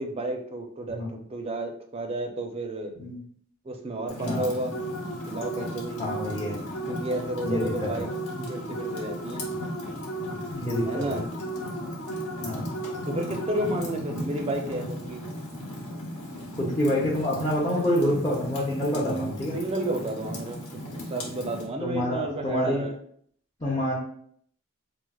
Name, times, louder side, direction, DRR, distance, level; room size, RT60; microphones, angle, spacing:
voice 1, 0.0-2.9 3.6-4.7 5.3-6.0 6.9-8.1 8.4-9.5 10.9-11.3 13.1-15.2 19.0-23.0, right 1 dB, 25° right, 4 dB, 0.4 m, -32 dB
Fire, 4.1-21.7, left 1 dB, 85° left, 1.0 m, -37 dB
sound 1, 4.7-14.1, right 1 dB, 70° left, 0.5 m, -36 dB
voice 2, 6.0-6.6 7.4-8.1 10.5-11.3 12.4-12.7 16.6-19.6 21.8-22.9 23.6-23.9, left 1 dB, 20° left, -7 dB, 0.6 m, -27 dB
4.5 x 2.0 x 2.3 m, 0.62 s
head